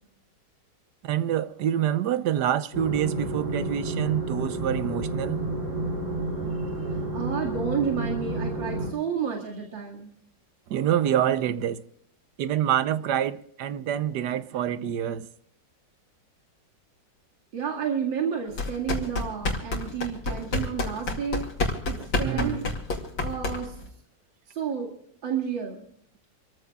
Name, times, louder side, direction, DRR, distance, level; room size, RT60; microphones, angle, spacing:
voice 1, 1.0-5.4 10.7-11.8 12.4-15.3 22.0-22.6, right 10 dB, 70° right, 1.3 m, -26 dB
sound 1, 2.7-8.9, right 2 dB, 40° right, 3.7 m, -30 dB
voice 2, 6.8-10.1 17.5-21.5 21.9-22.7 23.2-23.8 24.5-24.9 25.2-25.8, right 7 dB, 90° right, 2.8 m, -31 dB
sound 2, 18.5-23.9, left 2 dB, 85° left, 3.2 m, -29 dB
27.5 x 14.5 x 2.4 m
omnidirectional pair, 2.0 m